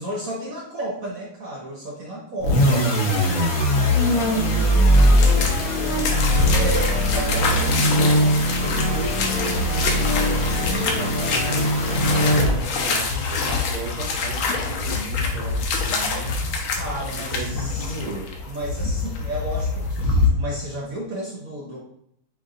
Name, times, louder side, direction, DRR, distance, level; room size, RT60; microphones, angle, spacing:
voice 1, 0.0-2.8 6.5-7.6 16.8-18.0 18.5-21.8, right 1 dB, 60° right, -3 dB, 0.9 m, -32 dB
sound 1, 2.4-12.8, equal, 55° left, 1.0 m, -20 dB
voice 2, 2.7-6.0 7.1-8.2 8.6-16.4 17.1-18.3, right 2 dB, 80° right, 0 dB, 1.8 m, -35 dB
sound 2, 4.9-20.3, left 4 dB, 80° left, 1.6 m, -26 dB
7.6 x 2.6 x 2.6 m, 0.73 s
omnidirectional pair, 2.3 m